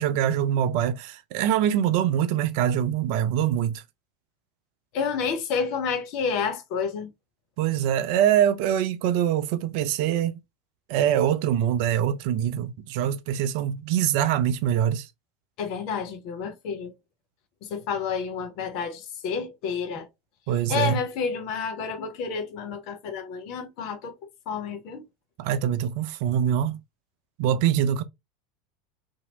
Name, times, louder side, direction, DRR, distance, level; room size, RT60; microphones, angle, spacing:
voice 1, 0.0-3.8 7.6-10.4 10.9-15.1 20.5-21.0 25.4-26.8 27.4-28.0, right 10 dB, 60° right, 0.4 m, -24 dB
voice 2, 4.9-7.1 15.6-16.9 17.6-20.1 20.7-24.1 24.5-25.0, left 6 dB, 55° left, 0.8 m, -30 dB
2.9 x 2.7 x 2.8 m
hypercardioid pair, 80°, 0 cm